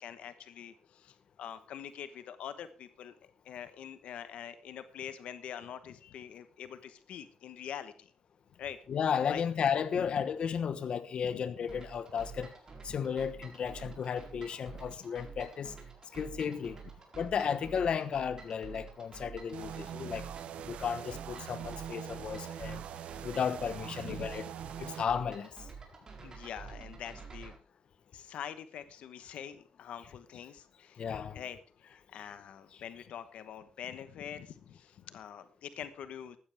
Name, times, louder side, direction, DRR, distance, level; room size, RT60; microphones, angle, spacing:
voice 1, 0.0-3.1 3.4-8.1 8.6-8.8 9.3-9.4 10.0-10.1 11.3-11.4 13.8-14.0 20.0-20.2 24.0-24.3 26.2-27.5 28.1-31.1 31.3-36.4, left 9 dB, 80° left, 1.1 m, -45 dB
voice 2, 8.9-12.5 12.8-15.7 16.1-16.8 17.2-20.3 20.7-22.8 23.2-24.4 24.8-25.5 31.0-31.4 32.2-32.3, left 7 dB, 55° left, 1.1 m, -34 dB
sound 1, 11.7-27.6, right 5 dB, 35° right, 4.5 m, -49 dB
sound 2, 19.5-25.1, right 10 dB, 80° right, 0.8 m, -43 dB
15.0 x 12.5 x 3.5 m
cardioid pair, 115°, 2 cm